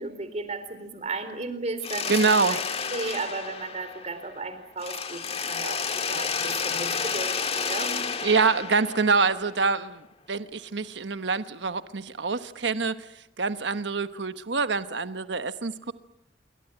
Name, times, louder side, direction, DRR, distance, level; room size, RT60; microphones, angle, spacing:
voice 1, 0.0-2.1 2.4-2.6 2.9-5.8 6.1-8.0, right 3 dB, 40° right, 10 dB, 4.1 m, -34 dB
Mechanisms, 1.8-4.4 4.8-9.6, left 6 dB, 35° left, 1.6 m, -31 dB
voice 2, 2.1-2.6 8.2-10.0 10.3-13.1 13.4-15.9, right 4 dB, 85° right, 11 dB, 1.1 m, -25 dB
28.0 x 23.5 x 8.9 m, 0.78 s
head